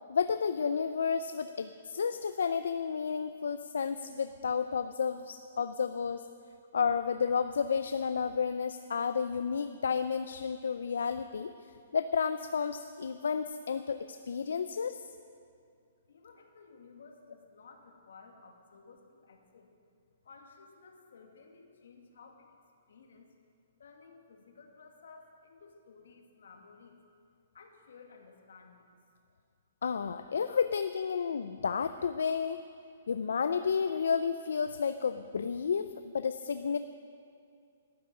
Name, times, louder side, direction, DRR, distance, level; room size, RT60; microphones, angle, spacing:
voice 1, 0.1-6.2 6.7-11.5 11.9-15.0 29.8-32.6 33.1-36.8, left 6 dB, 85° left, 10 dB, 0.5 m, -31 dB
voice 2, 16.1-19.7 20.2-22.5 22.9-23.3 23.8-27.0 27.5-28.9, left 4 dB, 65° left, 3 dB, 2.0 m, -55 dB
12.5 x 9.2 x 9.0 m, 2.4 s
hypercardioid pair, 180°, 0 cm